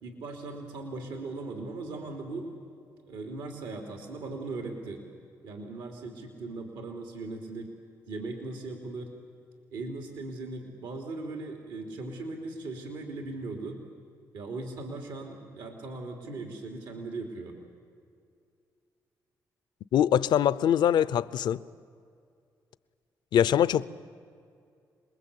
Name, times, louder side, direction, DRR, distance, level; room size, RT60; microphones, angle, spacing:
voice 1, 0.0-2.5 3.0-5.0 5.4-7.7 8.1-9.1 9.7-13.8 14.3-17.5, right 3 dB, 85° right, 2.9 m, -38 dB
voice 2, 19.9-21.6 23.3-23.9, left 10 dB, 75° left, 0.6 m, -23 dB
27.0 x 21.0 x 8.4 m
supercardioid pair, 65°, 8 cm